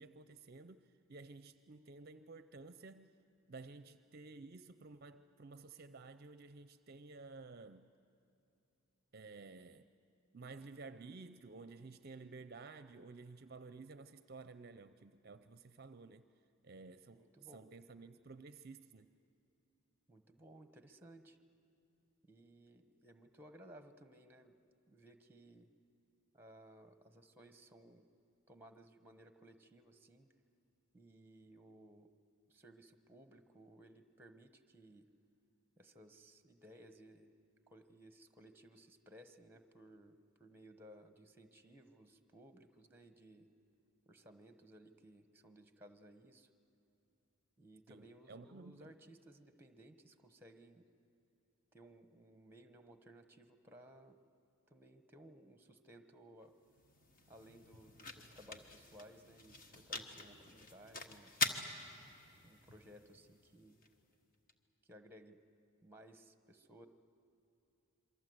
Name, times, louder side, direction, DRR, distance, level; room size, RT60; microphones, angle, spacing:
voice 1, 0.0-3.2 3.5-7.9 9.1-9.9 10.3-16.3 16.6-19.1 47.9-48.9, right 3 dB, 45° right, 0.5 m, -53 dB
voice 2, 17.1-17.7 20.1-21.4 22.2-24.5 24.9-25.7 26.3-28.1 28.5-30.3 30.9-32.1 32.5-35.1 35.8-37.3 37.7-43.5 44.1-46.5 47.6-50.9 51.7-54.2 54.7-56.5 57.3-61.3 62.4-63.8 64.8-65.4 65.8-66.9, right 1 dB, 10° right, 1.1 m, -59 dB
sound 1, 56.4-64.5, left 3 dB, 40° left, 1.3 m, -45 dB
27.5 x 23.5 x 7.9 m
head